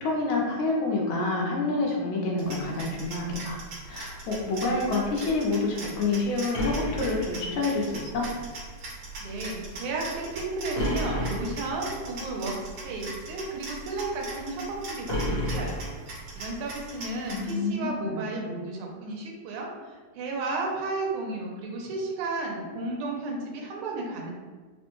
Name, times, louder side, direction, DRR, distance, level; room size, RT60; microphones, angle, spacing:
voice 1, 0.0-3.6 3.9-8.3 17.3-18.2, left 3 dB, 80° left, -1 dB, 1.9 m, -28 dB
sound 1, 2.4-17.5, right 2 dB, 55° right, 1.7 m, -41 dB
sound 2, 6.5-7.9 10.7-11.9 15.1-16.4, equal, 55° left, 1.3 m, -31 dB
voice 2, 9.2-24.3, right 2 dB, 85° right, -1 dB, 2.1 m, -33 dB
4.9 x 2.1 x 3.0 m, 1.4 s
omnidirectional pair, 3.4 m